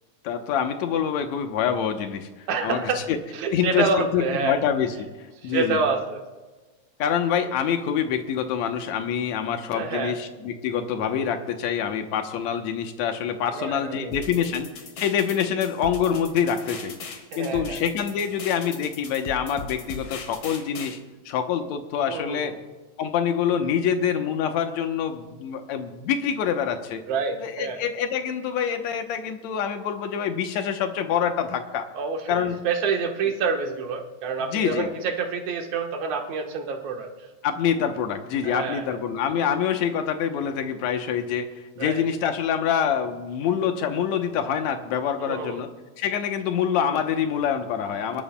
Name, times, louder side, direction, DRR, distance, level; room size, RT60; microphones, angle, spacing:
voice 1, 0.2-3.2 3.5-5.1 5.4-5.8 7.0-14.7 15.0-17.0 17.4-21.0 21.3-22.5 23.0-27.0 27.4-31.9 32.3-32.5 34.4-34.9 37.4-41.5 41.8-45.7 46.0-48.2, left 8 dB, 70° left, 6 dB, 2.1 m, -26 dB
voice 2, 2.5-3.0 3.3-4.6 5.4-6.2 9.7-10.2 13.5-14.2 14.4-14.5 17.3-17.8 22.1-22.6 27.1-27.8 31.9-37.1 38.4-39.0 41.8-42.0 45.2-45.6, right 5 dB, 70° right, 2 dB, 2.6 m, -27 dB
sound 1, 14.1-21.0, left 5 dB, 55° left, 2.2 m, -39 dB
24.0 x 12.0 x 2.2 m, 1.2 s
omnidirectional pair, 3.5 m